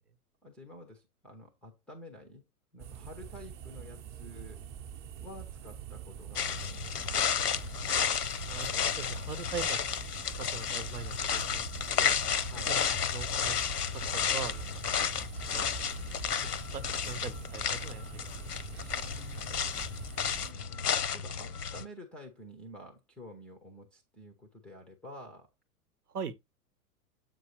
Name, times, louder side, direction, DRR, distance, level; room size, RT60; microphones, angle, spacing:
voice 1, 0.4-2.4 2.7-4.6 5.2-7.7 12.4-12.7 19.1-19.6 20.4-25.5, left 1 dB, 5° left, 0.3 m, -50 dB
sound 1, 2.8-20.5, right 9 dB, 35° right, 0.7 m, -45 dB
sound 2, 6.4-21.9, left 7 dB, 90° left, 0.8 m, -32 dB
voice 2, 9.0-9.8 10.4-12.2 12.7-12.9 13.1-13.6 14.1-14.8 15.5-15.8 16.7-18.3 26.1-26.4, right 6 dB, 80° right, 0.9 m, -41 dB
7.6 x 5.3 x 2.9 m
figure-of-eight pair, 105°, 46 cm